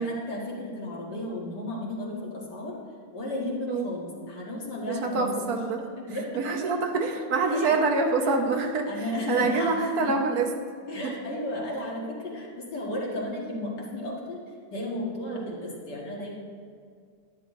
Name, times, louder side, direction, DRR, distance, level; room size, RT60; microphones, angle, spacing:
voice 1, 0.0-2.7 3.1-5.4 6.0-6.3 6.6-6.7 7.4-7.7 8.2-8.4 8.9-10.2 10.9-14.4 14.7-16.3, left 1 dB, 60° left, -3 dB, 2.3 m, -33 dB
voice 2, 4.9-5.8 6.4-8.9 9.3-10.5 11.0-11.1 15.3-15.5, right 4 dB, 55° right, 3 dB, 1.3 m, -26 dB
12.0 x 10.0 x 3.2 m, 2.1 s
omnidirectional pair, 2.1 m